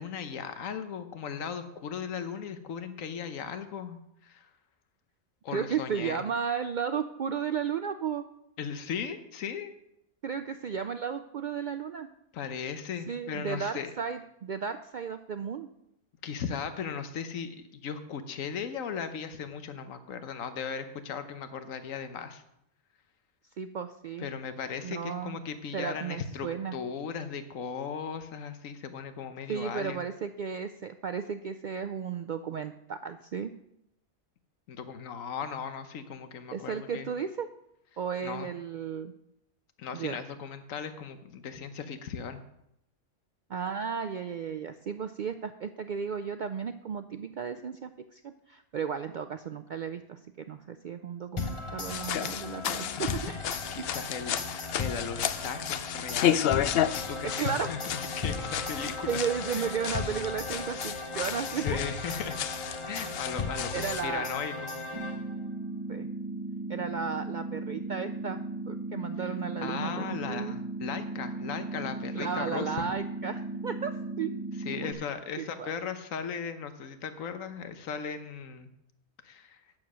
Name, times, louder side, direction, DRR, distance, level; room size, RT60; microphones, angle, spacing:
voice 1, 0.0-4.5 5.4-6.2 8.6-9.7 12.3-13.9 16.2-22.4 24.2-30.0 34.7-37.1 38.2-38.5 39.8-42.4 53.0-53.2 53.7-56.4 57.1-59.2 59.5-59.7 61.3-62.4 62.9-64.5 69.2-69.3 69.6-72.9 74.6-78.7 79.2-79.6, left 6 dB, 85° left, 9 dB, 1.3 m, -37 dB
voice 2, 5.5-8.2 10.2-12.1 13.1-15.7 23.6-24.3 24.8-25.4 25.7-26.8 29.5-33.5 36.5-37.5 38.0-39.1 39.9-40.2 43.5-53.5 53.8-53.9 57.2-57.7 59.1-61.6 63.7-64.3 65.9-66.1 66.7-68.4 68.7-70.6 72.1-74.3 74.7-74.9 75.4-75.7, right 7 dB, 80° right, 9 dB, 0.4 m, -34 dB
sound 1, 51.4-65.5, left 3 dB, 30° left, 0.8 m, -37 dB
sound 2, 51.8-64.1, left 10 dB, 65° left, 0.6 m, -33 dB
sound 3, 64.9-74.9, right 2 dB, 20° right, 0.9 m, -36 dB
9.1 x 7.3 x 6.1 m, 0.80 s
omnidirectional pair, 1.3 m